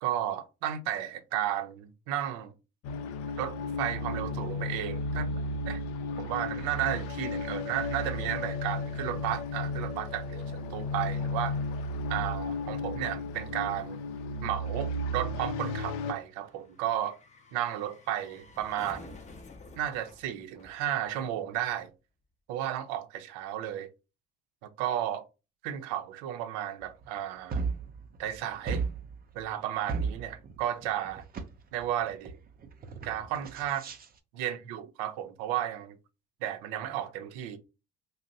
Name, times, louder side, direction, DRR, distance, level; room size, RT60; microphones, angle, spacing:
voice 1, 0.0-2.5 3.4-5.8 6.2-11.6 12.1-14.0 14.4-17.2 17.5-19.2 19.7-21.9 22.5-23.9 24.6-25.2 25.6-27.6 28.2-28.8 29.3-31.2 31.7-32.3 33.0-33.8 34.3-36.0 36.4-37.6, right 11 dB, 80° right, 0.5 m, -33 dB
sound 1, 2.8-16.1, left 2 dB, 80° left, 0.5 m, -34 dB
sound 2, 14.1-21.5 21.8-21.9, left 3 dB, 25° left, 0.5 m, -53 dB
sound 3, 27.0-27.1 27.5-28.4 28.7-29.4 29.9-31.5 31.8-32.4 32.6-34.0, right 5 dB, 30° right, 0.5 m, -34 dB
2.6 x 2.0 x 3.9 m
supercardioid pair, 80°, 29 cm